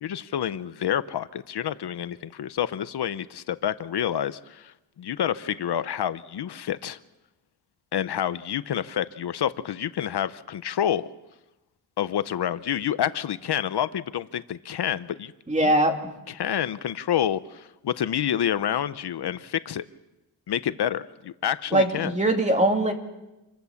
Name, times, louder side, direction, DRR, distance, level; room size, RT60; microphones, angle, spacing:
voice 1, 0.0-7.0 7.9-11.1 12.0-15.3 15.6-15.7 16.3-19.8 20.5-22.1, left 10 dB, 70° left, 14 dB, 0.8 m, -28 dB
voice 2, 15.5-16.1 21.7-22.9, right 1 dB, 15° right, 4 dB, 2.5 m, -21 dB
27.5 x 22.5 x 7.2 m, 1.0 s
wide cardioid pair, 150°, 41 cm